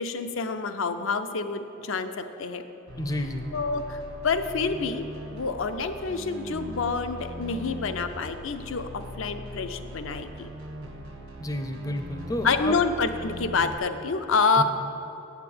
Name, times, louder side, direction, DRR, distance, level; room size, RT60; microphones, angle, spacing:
voice 1, 0.0-2.6 3.5-5.0 5.3-10.5 12.4-14.6, left 4 dB, 70° left, 8 dB, 0.6 m, -27 dB
sound 1, 2.9-13.8, equal, 70° right, 1.5 m, -40 dB
voice 2, 3.0-3.4 11.4-12.8 14.6-14.7, left 1 dB, 20° left, 7 dB, 0.5 m, -30 dB
8.3 x 5.9 x 7.7 m, 3.0 s
head